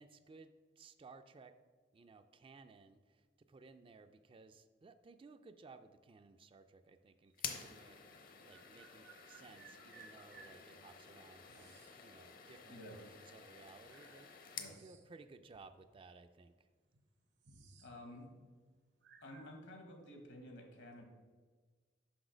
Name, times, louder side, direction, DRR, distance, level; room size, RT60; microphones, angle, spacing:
voice 1, 0.0-1.5 1.9-16.7, right 4 dB, 30° right, 9 dB, 0.3 m, -59 dB
sound 1, 7.3-14.8, left 7 dB, 55° left, 0.7 m, -50 dB
sound 2, 7.3-7.4 8.5-10.6 11.5-12.0 13.1-13.2 13.8-15.2 15.5-15.7 16.5-16.6 16.9-17.9 18.2-18.5 19.0-19.6, right 4 dB, 80° right, 1.0 m, -61 dB
voice 2, 12.7-13.0 14.5-14.8 17.8-18.3 19.2-21.0, left 1 dB, 75° left, 4 dB, 1.4 m, -52 dB
6.1 x 5.6 x 5.0 m, 1.4 s
head